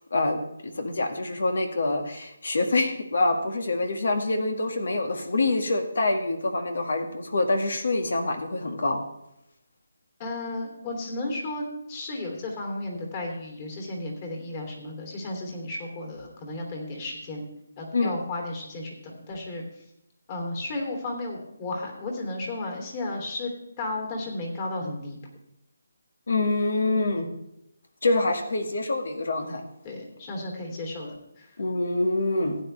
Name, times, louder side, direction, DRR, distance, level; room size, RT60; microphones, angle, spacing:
voice 1, 0.1-9.0 17.9-18.2 26.3-27.3 28.0-29.6 31.6-32.6, left 2 dB, 70° left, 5 dB, 1.9 m, -26 dB
voice 2, 10.2-17.5 17.8-19.8 20.3-23.5 23.8-25.2 29.8-31.6, left 2 dB, 30° left, 0 dB, 3.0 m, -34 dB
15.5 x 9.6 x 3.4 m, 0.82 s
figure-of-eight pair, 165°, 0 cm